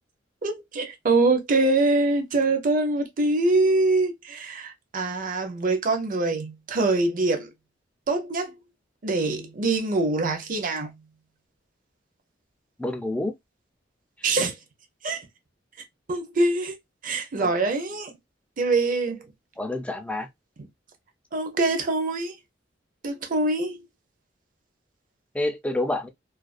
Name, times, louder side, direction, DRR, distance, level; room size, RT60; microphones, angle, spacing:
voice 1, 0.4-7.5 8.1-8.5 9.0-10.9 14.2-14.5 15.0-15.2 16.1-16.8 17.0-18.1 18.6-19.2 21.3-22.3 23.0-23.8, right 2 dB, 45° right, 0.6 m, -24 dB
voice 2, 12.8-13.3 17.4-17.5 19.6-20.3 25.3-26.1, left 1 dB, 5° left, 0.3 m, -28 dB
2.4 x 2.3 x 2.3 m
head